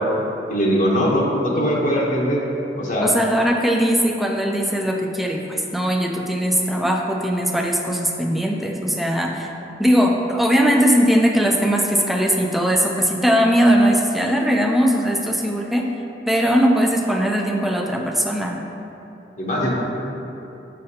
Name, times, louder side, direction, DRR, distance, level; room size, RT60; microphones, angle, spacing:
voice 1, 0.5-2.4 2.8-3.1 19.4-19.7, equal, 45° left, -3 dB, 0.8 m, -20 dB
voice 2, 3.0-9.5 9.8-15.8 16.3-18.6, equal, ahead, 1 dB, 0.4 m, -19 dB
6.7 x 6.4 x 2.8 m, 2.9 s
head